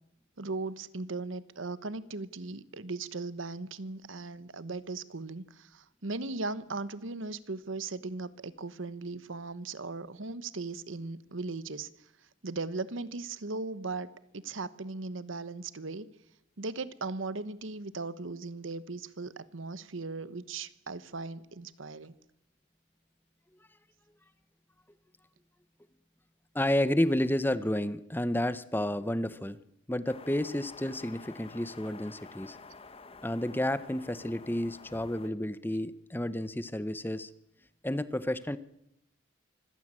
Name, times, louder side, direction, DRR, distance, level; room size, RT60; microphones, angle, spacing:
voice 1, 0.4-11.9 12.4-14.1 14.3-16.1 16.6-22.1, right 3 dB, 70° right, 1.1 m, -38 dB
voice 2, 26.5-29.6 29.9-32.6 33.2-37.3 37.8-38.6, left 1 dB, 10° left, 0.8 m, -31 dB
sound 1, 30.1-35.3, left 4 dB, 30° left, 1.1 m, -50 dB
25.0 x 16.0 x 8.9 m
head